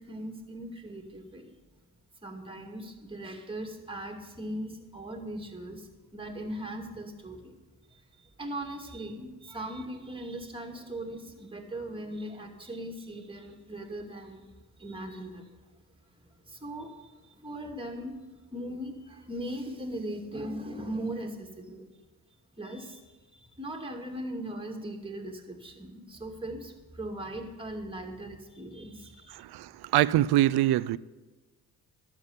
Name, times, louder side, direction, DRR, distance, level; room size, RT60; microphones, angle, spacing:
voice 1, 0.0-1.6 2.2-7.5 7.9-14.5 14.7-15.6 16.2-21.9 22.6-29.4, right 1 dB, 15° right, 2.4 m, -39 dB
voice 2, 29.4-31.0, right 14 dB, 75° right, 0.6 m, -24 dB
12.0 x 7.6 x 9.7 m
cardioid pair, 85°, 39 cm